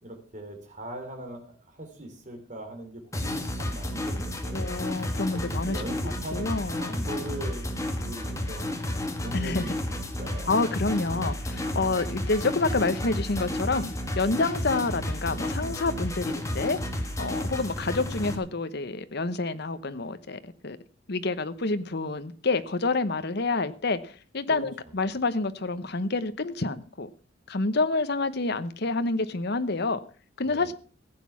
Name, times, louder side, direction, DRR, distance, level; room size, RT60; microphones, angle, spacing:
voice 1, 0.0-4.7 5.0-5.1 5.5-7.7 8.0-8.7 9.2-9.7 10.2-10.5 11.7-12.0 24.5-24.6 30.4-30.7, right 1 dB, 40° right, 3.4 m, -40 dB
sound 1, 3.1-18.4, left 1 dB, 15° left, 1.8 m, -32 dB
voice 2, 4.5-5.8 6.3-7.1 9.3-9.7 10.5-16.8 17.2-20.8 21.1-27.1 27.5-30.0 30.4-30.7, left 3 dB, 60° left, 1.0 m, -28 dB
15.5 x 8.5 x 5.9 m
head